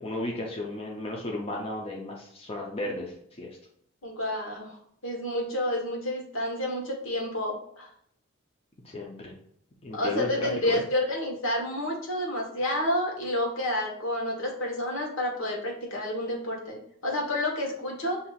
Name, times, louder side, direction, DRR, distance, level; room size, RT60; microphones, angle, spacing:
voice 1, 0.0-3.6 8.8-9.3 9.8-10.8, left 1 dB, 30° left, -1 dB, 0.6 m, -34 dB
voice 2, 4.0-4.8 5.0-7.9 9.9-18.2, left 1 dB, 70° left, 0 dB, 1.4 m, -29 dB
7.3 x 2.7 x 2.4 m, 0.69 s
head